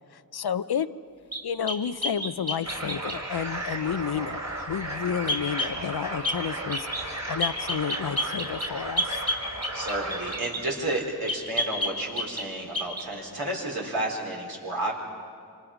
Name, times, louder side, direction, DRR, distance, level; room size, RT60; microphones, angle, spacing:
voice 1, 0.1-0.9 1.4-4.4 4.7-9.2, left 8 dB, 85° left, 14 dB, 0.6 m, -31 dB
sound 1, 1.3-3.2 5.3-5.8 6.2-6.4 6.7-7.1 7.4-10.7 11.3-12.5 12.7-13.1, left 1 dB, 20° right, 2.8 m, -30 dB
sound 2, 2.6-10.4, right 2 dB, 45° right, 3.4 m, -35 dB
voice 2, 9.7-14.9, right 1 dB, 75° right, -1 dB, 3.8 m, -31 dB
27.5 x 25.0 x 5.0 m, 2.2 s
wide cardioid pair, 70°, 37 cm